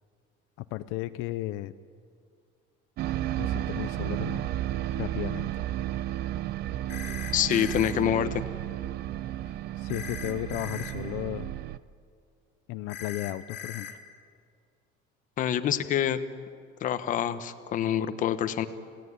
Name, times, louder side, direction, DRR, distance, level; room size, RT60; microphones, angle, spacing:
voice 1, 0.7-1.7 3.4-4.4 4.9-5.5 9.8-11.6 12.7-14.0, left 16 dB, 80° left, 12 dB, 0.7 m, -34 dB
sound 1, 3.0-11.8, right 13 dB, 50° right, 0.6 m, -33 dB
sound 2, 6.9-7.9 9.9-10.9 12.9-13.9, left 7 dB, 55° left, 2.2 m, -40 dB
voice 2, 7.3-8.4 15.4-16.2 16.8-18.7, left 10 dB, 40° left, 10 dB, 1.1 m, -26 dB
28.0 x 17.0 x 9.6 m, 2.2 s
cardioid pair, 170°, 21 cm